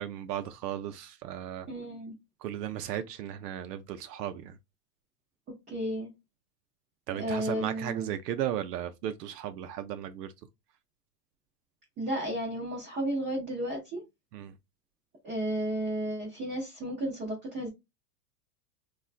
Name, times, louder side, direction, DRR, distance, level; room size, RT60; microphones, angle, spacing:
voice 1, 0.0-1.7 2.4-4.6 7.1-10.3 14.3-14.5, right 11 dB, 80° right, 0.6 m, -35 dB
voice 2, 1.7-2.1 5.7-6.1 7.1-8.1 12.0-14.0 15.2-17.7, right 1 dB, 15° right, 0.6 m, -33 dB
3.7 x 2.3 x 2.4 m
supercardioid pair, 165°, 48 cm